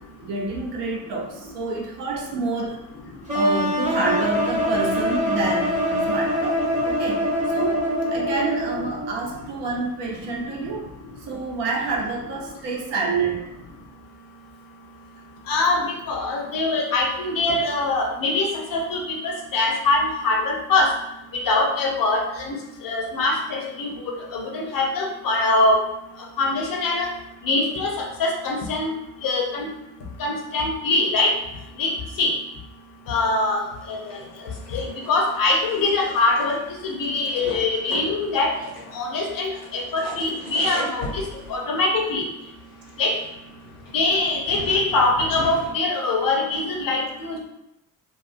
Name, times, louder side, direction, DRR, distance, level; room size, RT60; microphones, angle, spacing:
voice 1, 0.2-2.8 3.3-10.9 11.2-13.4, right 3 dB, 60° right, -1 dB, 0.7 m, -27 dB
sound 1, 3.3-9.1, equal, 15° right, 0.9 m, -24 dB
voice 2, 15.5-20.9 21.3-22.5 22.8-25.8 26.4-27.1 27.4-28.9 29.2-29.7 30.2-31.3 31.8-31.9 32.2-32.3 33.1-34.0 34.7-36.6 36.8-38.5 38.9-41.2 41.5-42.2 43.0-43.2 43.9-47.4, left 2 dB, 45° left, -1 dB, 0.7 m, -23 dB
sound 2, 33.8-45.7, left 2 dB, 80° left, 0.9 m, -39 dB
2.4 x 2.3 x 2.5 m, 0.86 s
figure-of-eight pair, 40°, 48 cm